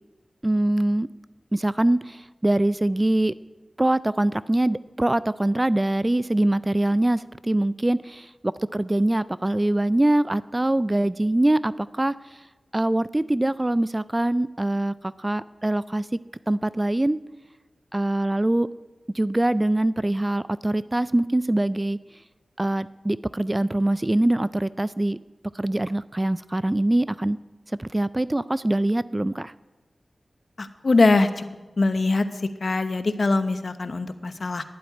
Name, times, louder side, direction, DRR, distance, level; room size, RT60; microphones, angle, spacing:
voice 1, 0.4-1.1 1.5-3.3 3.8-12.2 12.7-16.2 16.5-17.2 17.9-18.7 19.1-22.0 22.6-25.2 25.5-27.4 27.8-29.5, right 1 dB, 20° right, 17 dB, 0.3 m, -23 dB
voice 2, 30.6-31.4 31.8-32.2 32.6-34.6, left 3 dB, 60° left, 11 dB, 0.9 m, -22 dB
11.0 x 7.8 x 9.6 m, 1.2 s
wide cardioid pair, 60°, 0 cm